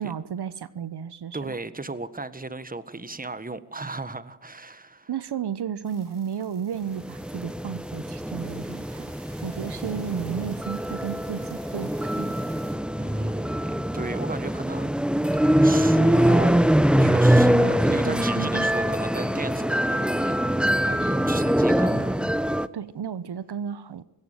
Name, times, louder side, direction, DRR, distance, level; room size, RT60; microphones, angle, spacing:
voice 1, 0.0-1.6 5.1-9.1 9.4-12.3 17.5-18.9 22.7-24.0, right 8 dB, 70° right, 15 dB, 1.0 m, -33 dB
voice 2, 1.3-5.1 13.0-14.9 15.3-16.7 17.0-22.2, right 3 dB, 20° right, 13 dB, 1.7 m, -35 dB
sound 1, 5.8-12.8, right 3 dB, 55° right, 7.4 m, -53 dB
sound 2, 7.0-22.7, equal, ahead, 0.9 m, -23 dB
21.0 x 18.0 x 7.5 m, 0.95 s
cardioid pair, 65°, 41 cm